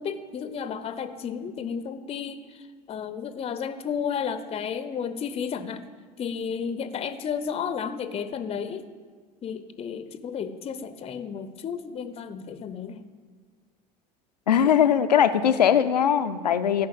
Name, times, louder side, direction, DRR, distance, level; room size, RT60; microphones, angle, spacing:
voice 1, 0.0-5.8 6.2-8.9 9.4-13.1, left 7 dB, 30° left, 12 dB, 0.7 m, -32 dB
voice 2, 14.5-16.9, left 8 dB, 80° left, 11 dB, 0.6 m, -20 dB
14.5 x 5.4 x 8.0 m, 1.6 s
figure-of-eight pair, 70°, 21 cm